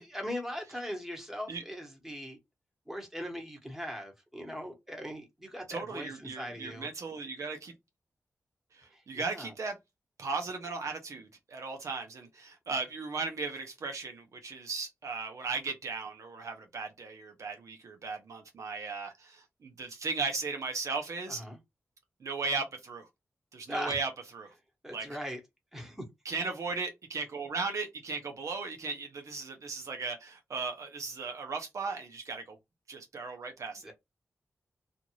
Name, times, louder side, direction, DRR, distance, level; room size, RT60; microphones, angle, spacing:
voice 1, 0.0-2.4 2.9-6.9 8.9-9.5 21.3-21.6 23.7-24.0 24.8-25.4 25.7-26.0 33.8-33.9, equal, 5° right, 1.4 m, -40 dB
voice 2, 5.7-7.7 8.7-9.8 10.2-21.4 22.2-23.1 23.5-24.5 24.9-25.1 26.2-32.6 32.9-33.9, right 4 dB, 70° right, 0.8 m, -37 dB
2.5 x 2.5 x 3.0 m
cardioid pair, 55°, 5 cm